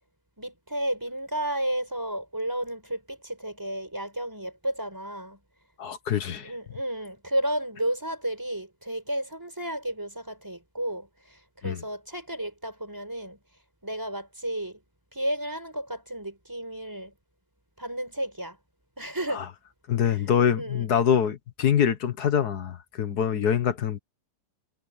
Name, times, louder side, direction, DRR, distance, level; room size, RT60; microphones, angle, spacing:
voice 1, 0.4-5.4 6.4-13.4 13.8-14.8 15.1-17.1 17.8-18.6 19.0-19.5 20.1-20.2 20.6-20.9, right 1 dB, 10° right, 5.1 m, -32 dB
voice 2, 5.8-6.5 11.6-11.8 19.3-19.5 19.9-24.0, left 8 dB, 60° left, 1.8 m, -25 dB
omnidirectional pair, 1.9 m